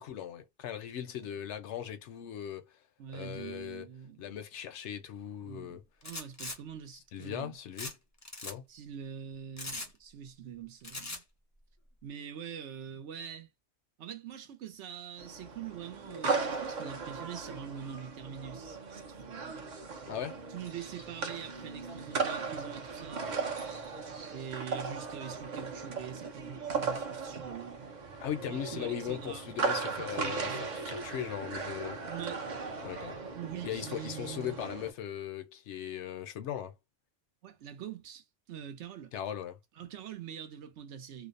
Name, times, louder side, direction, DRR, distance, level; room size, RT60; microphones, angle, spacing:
voice 1, 0.0-2.7 3.1-3.8 4.2-5.8 7.1-7.9 8.4-8.7 20.1-20.4 28.2-30.5 30.8-32.0 32.8-33.2 33.6-36.7 39.1-39.6, left 10 dB, 80° left, 0.9 m, -38 dB
voice 2, 3.0-4.2 5.4-7.6 8.7-11.2 12.0-13.5 14.0-19.6 20.5-23.3 24.3-27.9 28.5-29.5 30.0-30.8 32.1-32.4 33.3-34.6 37.4-39.1 39.8-41.3, right 8 dB, 85° right, 1.0 m, -44 dB
sound 1, 6.0-6.6 7.8-7.9 8.2-8.5 9.6-9.9 10.8-11.2, left 2 dB, 25° left, 0.4 m, -40 dB
sound 2, 15.2-34.9, right 4 dB, 50° right, 0.6 m, -37 dB
2.7 x 2.0 x 2.4 m
omnidirectional pair, 1.2 m